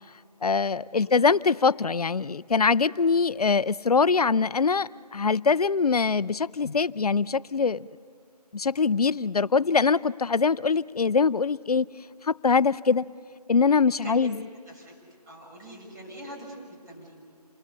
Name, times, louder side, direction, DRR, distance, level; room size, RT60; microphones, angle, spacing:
voice 1, 0.4-7.9 8.5-11.9 12.2-13.0 13.5-14.4, left 5 dB, 65° left, 19 dB, 0.6 m, -23 dB
voice 2, 15.3-16.6 16.9-17.1, equal, 25° right, -2 dB, 6.9 m, -43 dB
28.0 x 20.0 x 6.8 m, 2.3 s
figure-of-eight pair, 160°, 21 cm